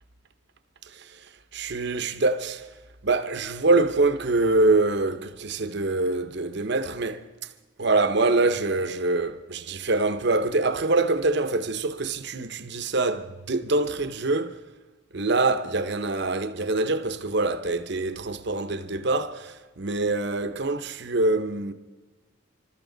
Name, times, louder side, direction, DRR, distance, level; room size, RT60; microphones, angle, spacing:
voice 1, 0.9-1.3 1.5-2.7 3.0-7.3 7.8-14.6 15.1-21.7, right 2 dB, 55° right, 0.9 m, -25 dB
27.5 x 13.0 x 4.0 m
head